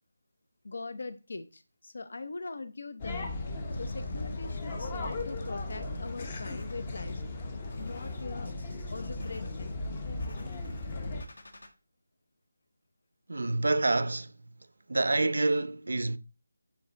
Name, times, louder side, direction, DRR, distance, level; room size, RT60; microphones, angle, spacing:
voice 1, 0.6-3.3 3.8-7.2 7.8-8.5 8.9-9.8, left 3 dB, 50° left, 0.8 m, -41 dB
sound 1, 3.0-11.2, left 2 dB, 15° left, 0.7 m, -36 dB
sound 2, 3.7-11.7, left 1 dB, 75° left, 1.6 m, -51 dB
voice 2, 13.3-14.3 14.9-16.2, right 2 dB, 65° right, 0.6 m, -27 dB
9.7 x 3.3 x 4.0 m
figure-of-eight pair, 180°, 0 cm